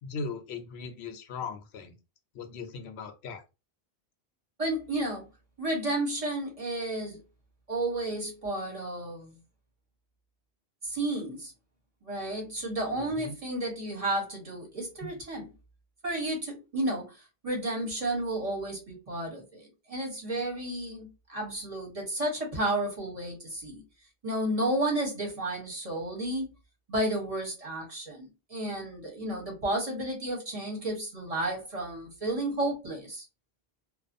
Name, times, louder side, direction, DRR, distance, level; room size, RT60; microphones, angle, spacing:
voice 1, 0.0-1.9 2.3-3.4 13.0-13.3, left 4 dB, 85° left, 0.9 m, -38 dB
voice 2, 4.6-5.2 5.6-7.2 7.7-9.3 10.8-11.5 12.0-15.5 16.0-23.8 24.2-26.5 26.9-33.2, right 1 dB, 35° right, 0.9 m, -32 dB
2.5 x 2.3 x 2.5 m
omnidirectional pair, 1.1 m